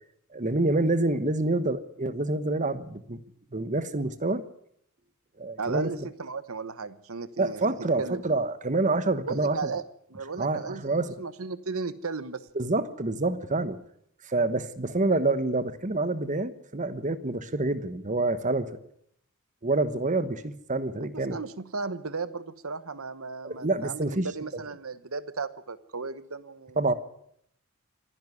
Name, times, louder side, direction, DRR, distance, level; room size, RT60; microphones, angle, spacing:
voice 1, 0.3-3.2 3.5-4.4 5.4-5.9 7.4-9.7 10.4-11.1 12.5-13.8 14.3-18.7 19.6-21.4 23.4-24.3 26.8-26.9, right 2 dB, 35° right, 13 dB, 1.2 m, -27 dB
voice 2, 5.6-8.2 9.3-9.8 10.1-10.8 11.2-12.5 21.0-26.9, right 4 dB, 70° right, 14 dB, 1.1 m, -35 dB
25.5 x 11.0 x 9.7 m, 0.72 s
head